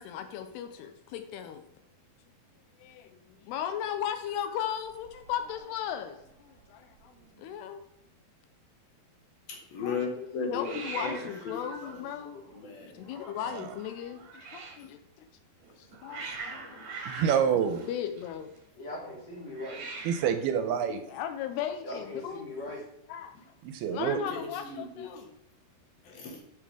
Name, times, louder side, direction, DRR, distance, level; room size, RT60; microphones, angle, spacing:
voice 1, 0.0-1.7 2.8-7.8 9.8-10.3 10.5-12.4 12.9-15.3 15.8-16.9 17.9-18.5 20.9-22.5 23.1-23.3 23.9-25.4, left 9 dB, 80° left, 8 dB, 2.7 m, -37 dB
Hiss, 4.3-5.6 5.9-6.3 6.6-6.7 6.9-7.6 10.6-14.9 15.6-18.6 19.5-20.4, right 4 dB, 55° right, 2.0 m, -44 dB
voice 2, 9.5-11.5 12.5-13.0 23.3-23.4 23.9-25.1 26.0-26.4, left 5 dB, 65° left, 1 dB, 3.1 m, -36 dB
voice 3, 10.6-12.4 18.8-19.9 21.8-22.8, left 1 dB, 40° left, -5 dB, 4.1 m, -41 dB
voice 4, 17.1-17.8 20.1-21.0 23.7-24.2, right 8 dB, 80° right, 8 dB, 2.5 m, -27 dB
11.0 x 6.4 x 3.5 m, 0.82 s
omnidirectional pair, 4.8 m